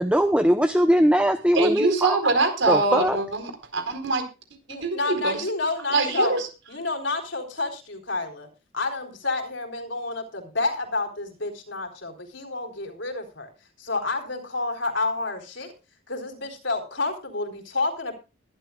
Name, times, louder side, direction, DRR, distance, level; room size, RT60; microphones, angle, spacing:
voice 1, 0.0-2.2 2.7-3.2, equal, 5° right, 8 dB, 0.8 m, -20 dB
voice 2, 1.5-4.2 4.8-5.4 5.9-6.5, right 3 dB, 65° right, 7 dB, 4.3 m, -24 dB
voice 3, 4.7-6.4 6.7-8.5 8.7-13.5 13.8-15.7 16.1-18.1, left 3 dB, 65° left, 4 dB, 4.0 m, -29 dB
21.5 x 12.5 x 2.4 m, 0.29 s
head